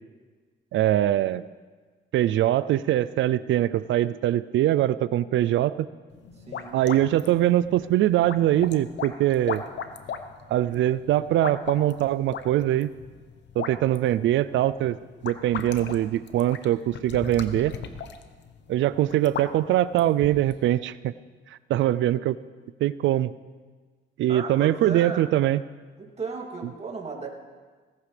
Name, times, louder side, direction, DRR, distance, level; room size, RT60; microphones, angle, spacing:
voice 1, 0.7-1.4 2.1-5.9 6.7-9.6 10.5-12.9 13.6-15.0 15.2-17.7 18.7-21.1 21.7-22.4 22.8-23.3 24.2-25.6, right 13 dB, 75° right, 16 dB, 0.4 m, -22 dB
sound 1, 6.1-20.7, left 7 dB, 65° left, 1.0 m, -39 dB
voice 2, 6.4-6.8 24.3-25.2 26.0-27.3, right 4 dB, 30° right, 0 dB, 2.7 m, -35 dB
18.0 x 15.5 x 3.4 m, 1.4 s
cardioid pair, 90°, 20 cm